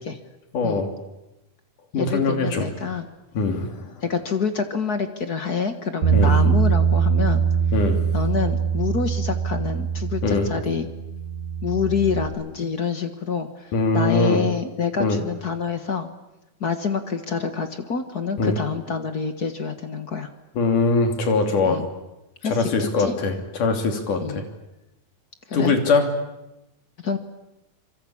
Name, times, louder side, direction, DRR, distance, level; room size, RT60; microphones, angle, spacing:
voice 1, 0.5-0.9 1.9-2.7 3.3-3.9 6.1-6.4 7.7-8.0 10.2-10.5 13.7-14.4 15.0-15.2 18.4-18.6 20.5-21.8 22.4-24.4 25.5-26.1, left 3 dB, 80° left, 5 dB, 4.5 m, -22 dB
voice 2, 2.0-3.1 4.0-7.4 8.1-10.8 11.6-16.1 16.6-20.3 21.6-21.9 22.4-22.7 23.0-23.1 24.2-24.4 25.5-25.7 27.0-27.2, left 5 dB, 45° left, 8 dB, 1.4 m, -27 dB
Bass guitar, 6.0-12.3, right 6 dB, 80° right, 4.4 m, -22 dB
26.0 x 24.0 x 8.6 m, 0.97 s
omnidirectional pair, 3.6 m